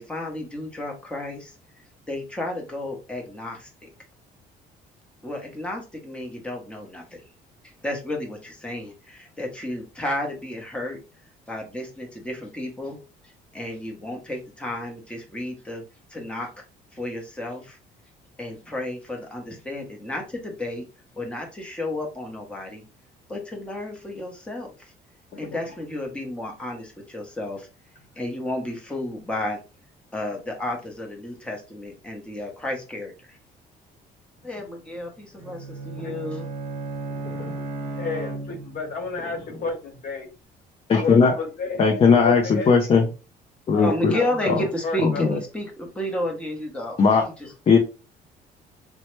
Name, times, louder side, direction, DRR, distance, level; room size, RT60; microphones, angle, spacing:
voice 1, 0.0-1.5 2.1-3.9 5.2-7.2 7.6-11.0 11.5-13.0 13.2-15.8 16.1-16.5 16.9-17.8 18.4-20.8 21.2-22.8 23.3-24.9 25.4-27.7 28.2-29.6 30.1-33.4 34.4-36.5 43.8-47.0 47.4-47.5, left 1 dB, 5° left, 0 dB, 0.9 m, -32 dB
Bowed string instrument, 35.4-39.0, right 3 dB, 45° right, 0.8 m, -34 dB
voice 2, 37.1-40.3 41.0-42.9 43.7-44.6 44.8-45.4, left 4 dB, 55° left, 3 dB, 1.0 m, -32 dB
voice 3, 40.9-41.4 41.8-43.1 43.7-44.1 45.0-45.4 47.0-47.2 47.7-47.8, left 5 dB, 35° left, 2 dB, 0.5 m, -17 dB
3.0 x 2.1 x 3.1 m, 0.32 s
cardioid pair, 110°, 17 cm